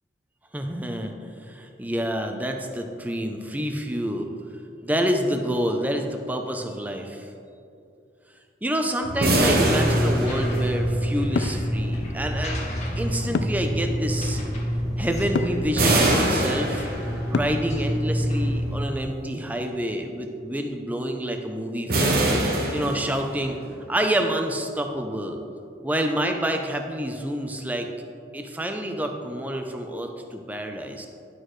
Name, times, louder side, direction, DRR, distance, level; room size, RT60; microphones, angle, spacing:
voice 1, 0.5-1.1 1.5-4.3 4.8-7.3 8.6-12.6 13.0-14.4 15.0-16.9 17.3-22.3 22.7-23.6 23.9-25.4 25.8-27.9 28.3-31.1, equal, 10° right, 4 dB, 0.5 m, -28 dB
sound 1, 9.0-18.8, equal, 40° left, 0.9 m, -27 dB
sound 2, 9.2-11.1 15.8-17.4 21.9-23.5, right 1 dB, 50° right, 1.0 m, -23 dB
sound 3, 11.4-11.6 13.3-13.7 15.3-15.6 17.3-17.7, left 5 dB, 70° left, 0.3 m, -26 dB
11.0 x 6.5 x 3.2 m, 2.6 s
head